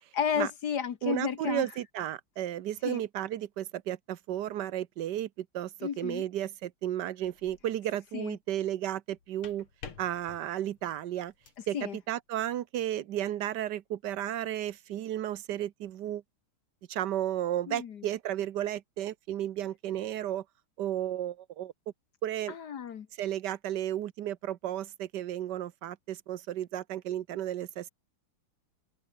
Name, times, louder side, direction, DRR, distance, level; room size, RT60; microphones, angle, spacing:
voice 1, 0.1-1.7 2.8-3.0 5.8-6.3 8.1-8.4 11.7-12.0 17.7-18.1 22.5-23.1, left 7 dB, 55° left, 1.5 m, -32 dB
voice 2, 1.0-9.7 10.0-11.3 11.7-16.2 16.9-20.4 20.8-21.7 22.2-22.5 23.2-27.9, right 12 dB, 60° right, 1.3 m, -33 dB
sound 1, 7.2-7.8 9.1-11.7, left 6 dB, 75° left, 3.5 m, -50 dB
omnidirectional pair, 2.4 m